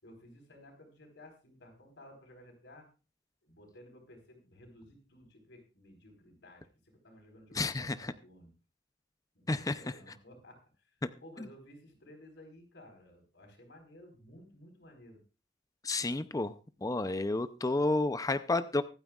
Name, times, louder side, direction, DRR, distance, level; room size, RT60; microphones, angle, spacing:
voice 1, 0.0-2.9 3.4-8.5 9.3-10.9 11.2-15.2, left 1 dB, 70° left, 2 dB, 4.6 m, -55 dB
voice 2, 7.6-8.1 9.5-9.8 15.8-16.5 16.8-18.8, left 2 dB, 20° left, 12 dB, 0.5 m, -30 dB
24.0 x 9.0 x 2.4 m, 0.33 s
head